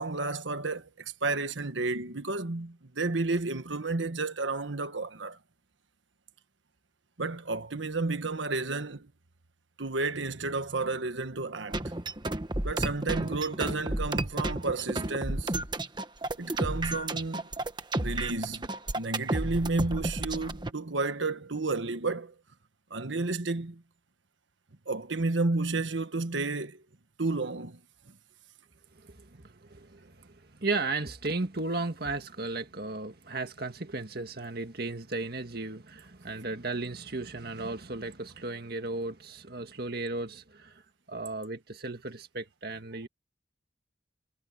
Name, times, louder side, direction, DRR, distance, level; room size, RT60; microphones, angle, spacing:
voice 1, 0.0-5.4 7.2-9.1 9.8-11.8 12.6-15.5 16.4-17.4 18.0-18.6 18.9-22.4 22.9-23.8 24.9-26.8 27.2-27.8 28.1-28.2, right 3 dB, 80° right, 1.4 m, -31 dB
sound 1, 11.7-20.7, right 2 dB, 25° right, 1.2 m, -32 dB
voice 2, 28.9-40.8 41.1-43.1, right 3 dB, 55° right, 1.9 m, -35 dB
head